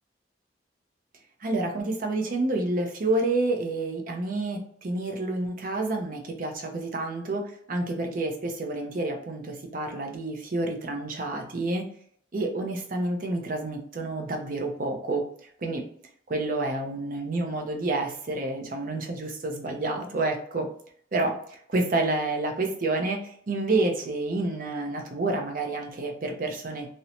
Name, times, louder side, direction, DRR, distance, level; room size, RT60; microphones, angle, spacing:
voice 1, 1.4-11.8 12.3-15.8 16.3-20.7 21.1-26.9, right 2 dB, 50° right, 3 dB, 0.5 m, -29 dB
2.6 x 2.1 x 2.8 m, 0.62 s
head